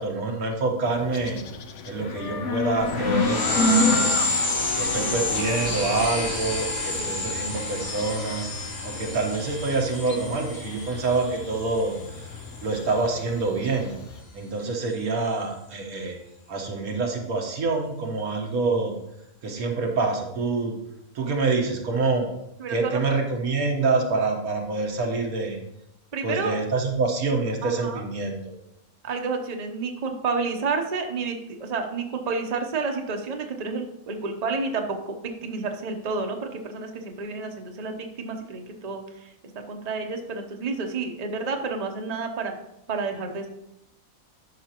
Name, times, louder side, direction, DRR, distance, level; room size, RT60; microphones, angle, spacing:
voice 1, 0.0-1.4 1.9-4.2 4.8-8.5 8.8-12.3 12.6-13.9 14.3-16.2 16.5-18.9 19.4-20.8 21.1-22.3 22.7-25.6 26.2-28.4, right 3 dB, 90° right, 2 dB, 1.7 m, -26 dB
sound 1, 0.8-14.2, left 2 dB, 60° left, 1.0 m, -31 dB
sound 2, 2.8-12.9, left 2 dB, 85° left, 2.8 m, -29 dB
voice 2, 7.0-7.4 22.6-23.0 26.1-26.6 27.6-28.0 29.0-35.1 35.4-39.3 39.7-42.5 42.9-43.5, right 4 dB, 35° right, 4 dB, 0.8 m, -30 dB
11.5 x 6.0 x 2.9 m, 0.83 s
omnidirectional pair, 1.5 m